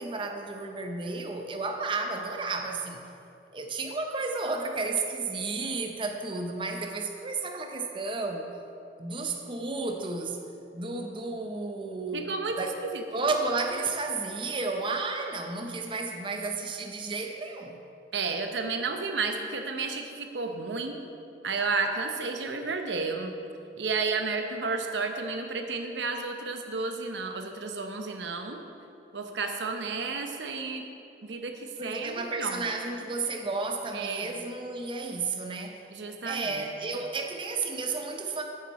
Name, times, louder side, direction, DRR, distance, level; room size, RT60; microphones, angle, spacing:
voice 1, 0.0-3.0 3.5-8.5 9.0-10.4 10.7-12.7 13.1-17.8 31.8-35.8 36.2-38.4, right 3 dB, 30° right, 3 dB, 0.6 m, -32 dB
voice 2, 12.1-13.0 18.1-21.0 21.4-23.3 23.8-28.6 29.1-30.8 31.2-32.6 33.9-34.4 35.9-36.7, right 4 dB, 90° right, 5 dB, 0.8 m, -32 dB
9.2 x 7.3 x 4.2 m, 2.7 s
head